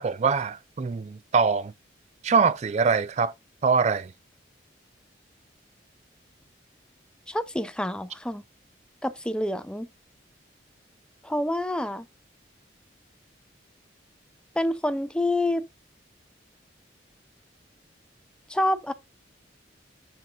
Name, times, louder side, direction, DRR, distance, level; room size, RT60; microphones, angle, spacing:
voice 1, 0.0-1.7 2.2-3.3 3.6-4.1, right 5 dB, 40° right, 0.3 m, -23 dB
voice 2, 7.3-8.4 9.0-9.9 11.2-12.0 14.6-15.6 18.5-18.9, left 1 dB, 5° left, 0.6 m, -27 dB
7.6 x 7.5 x 2.6 m
head